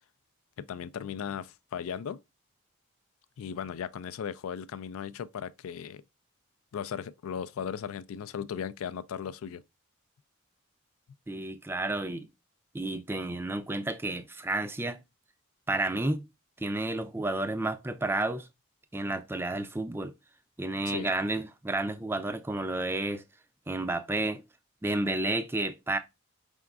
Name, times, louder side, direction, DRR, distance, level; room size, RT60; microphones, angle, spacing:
voice 1, 0.6-2.2 3.4-6.0 6.7-9.6 20.9-21.1, left 8 dB, 80° left, 0.3 m, -37 dB
voice 2, 11.3-12.3 12.7-15.0 15.7-16.2 16.6-18.5 18.9-20.1 20.6-23.2 23.7-24.4 24.8-26.0, right 2 dB, 10° right, 0.3 m, -31 dB
4.8 x 3.5 x 2.3 m
head